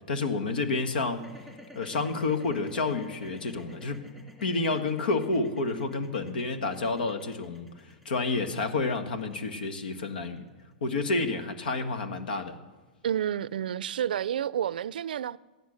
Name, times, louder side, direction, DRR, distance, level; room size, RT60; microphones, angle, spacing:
voice 1, 0.1-1.3 1.7-4.0 4.4-7.7 8.0-10.4 10.8-12.6, left 3 dB, 80° left, 1.5 m, -29 dB
sound 1, 1.1-11.3, left 1 dB, 5° left, 2.8 m, -51 dB
voice 2, 13.0-15.4, right 9 dB, 80° right, 0.4 m, -30 dB
14.5 x 10.5 x 6.4 m
hypercardioid pair, 130°, 5 cm